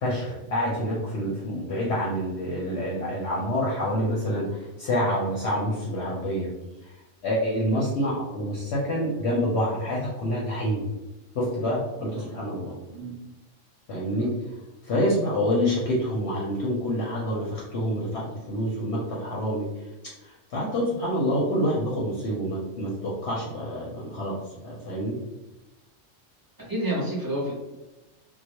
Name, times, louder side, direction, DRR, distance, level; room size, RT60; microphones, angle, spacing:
voice 1, 0.0-6.5 6.8-6.9 7.2-10.9 11.3-12.8 13.9-14.3 14.8-25.2, equal, 65° left, -5 dB, 0.8 m, -27 dB
voice 2, 26.7-27.5, right 1 dB, 20° right, -6 dB, 0.6 m, -29 dB
2.3 x 2.0 x 2.8 m, 1.0 s
omnidirectional pair, 1.4 m